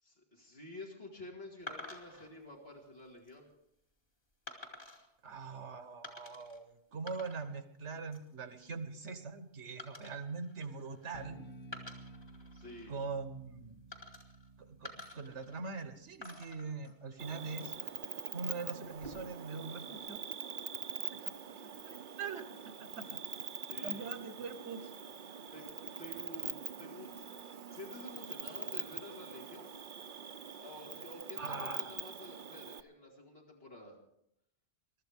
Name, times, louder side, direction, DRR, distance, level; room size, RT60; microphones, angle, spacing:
voice 1, 0.0-3.5 12.5-12.9 23.7-24.2 25.5-27.1 27.7-29.8 30.6-34.0, left 1 dB, 60° left, -3 dB, 2.5 m, -50 dB
sound 1, 1.7-2.3 3.0-3.3 4.5-5.1 6.0-6.6 6.9-7.6 7.9-8.3 9.8-11.2 11.6-12.9 13.9-14.5 14.8-15.9 16.2-17.9 18.8-19.4, left 1 dB, 35° left, 2.7 m, -50 dB
voice 2, 5.2-11.4 12.9-13.8 14.7-17.7 18.3-20.2 21.2-23.2 23.8-24.9 31.4-31.9, right 4 dB, 80° right, 9 dB, 1.5 m, -42 dB
Bass guitar, 11.1-17.6, right 2 dB, 10° left, 0.9 m, -55 dB
Cricket, 17.2-32.8, right 7 dB, 50° right, 0.8 m, -44 dB
23.5 x 13.0 x 3.6 m, 0.75 s
omnidirectional pair, 1.2 m